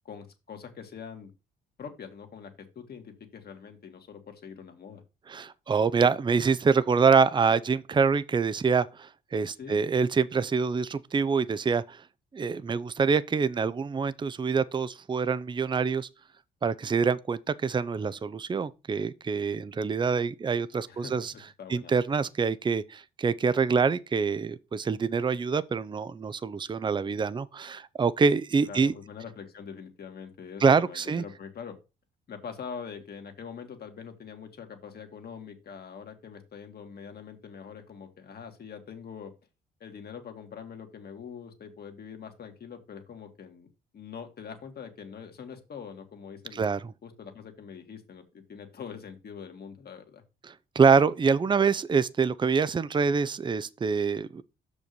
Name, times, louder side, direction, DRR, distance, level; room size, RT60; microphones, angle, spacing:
voice 1, 0.1-1.3 1.8-5.0 9.6-9.8 20.9-21.9 28.6-31.8 32.3-39.3 39.8-43.7 43.9-46.6 47.0-50.2, left 6 dB, 50° left, 1.9 m, -43 dB
voice 2, 5.3-12.0 12.3-16.1 16.6-21.3 21.7-28.9 30.6-31.2 46.5-46.8 50.4-54.4, right 5 dB, 25° right, 0.5 m, -25 dB
6.4 x 5.2 x 5.3 m
cardioid pair, 90°, 20 cm